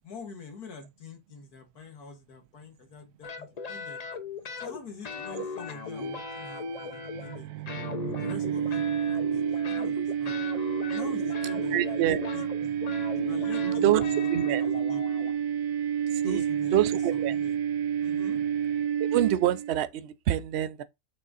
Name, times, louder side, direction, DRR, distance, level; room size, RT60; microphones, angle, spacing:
voice 1, 0.0-4.1 4.6-7.5 8.2-10.4 10.9-12.8 13.2-15.0 16.2-16.9 17.1-17.6 18.0-18.4, left 4 dB, 85° left, 2.1 m, -45 dB
sound 1, 3.2-4.8 5.0-7.4 7.7-15.3, left 4 dB, 40° left, 0.6 m, -37 dB
sound 2, 5.8-19.8, right 8 dB, 90° right, 1.1 m, -30 dB
voice 2, 11.7-12.2 13.6-14.0 14.3-14.6 16.1-16.4 16.7-17.4 19.0-20.8, right 12 dB, 60° right, 0.7 m, -26 dB
6.6 x 3.6 x 4.0 m
omnidirectional pair, 1.6 m